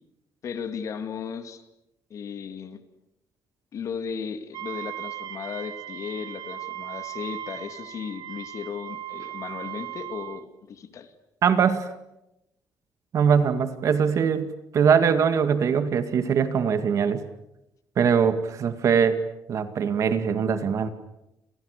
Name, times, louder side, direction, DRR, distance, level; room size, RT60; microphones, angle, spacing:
voice 1, 0.4-1.6 2.1-2.8 3.7-11.1, left 6 dB, 45° left, 9 dB, 2.4 m, -35 dB
Wind instrument woodwind instrument, 4.5-10.5, right 13 dB, 75° right, 1.9 m, -37 dB
voice 2, 11.4-11.9 13.1-17.2 18.0-19.2 19.5-20.9, right 7 dB, 45° right, 10 dB, 2.2 m, -22 dB
29.5 x 29.0 x 6.8 m, 0.88 s
cardioid pair, 175°, 7 cm